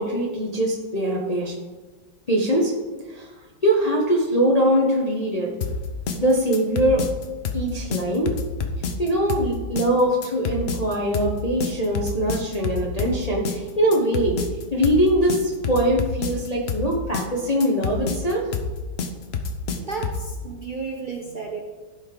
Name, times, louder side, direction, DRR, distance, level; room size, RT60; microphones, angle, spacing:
voice 1, 0.0-1.6 2.3-2.7 3.1-3.3 3.6-5.6 6.2-7.0 7.5-8.4 9.0-14.4 14.7-18.5, right 1 dB, 30° left, -2 dB, 0.8 m, -22 dB
sound 1, 5.6-20.3, left 4 dB, 80° left, 0.5 m, -28 dB
voice 2, 19.8-21.6, right 4 dB, 65° right, 0 dB, 0.4 m, -32 dB
15.0 x 5.3 x 3.8 m, 1.3 s
omnidirectional pair, 2.1 m